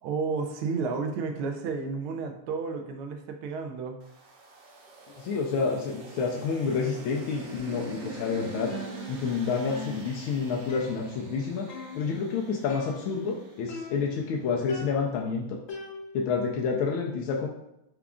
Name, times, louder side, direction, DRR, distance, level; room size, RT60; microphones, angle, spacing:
voice 1, 0.0-4.0, right 4 dB, 85° right, 5 dB, 1.5 m, -32 dB
sound 1, 4.0-14.3, right 2 dB, 65° right, 1.2 m, -45 dB
voice 2, 5.2-8.7 9.1-11.7 11.9-15.5 16.1-17.5, left 5 dB, 80° left, -1 dB, 1.4 m, -29 dB
sound 2, 8.7-9.4 9.7-11.4 11.7-12.2 12.7-13.4 13.7-14.3 14.7-16.4, left 1 dB, 55° left, 0.9 m, -42 dB
4.7 x 2.4 x 3.5 m, 0.85 s
omnidirectional pair, 2.3 m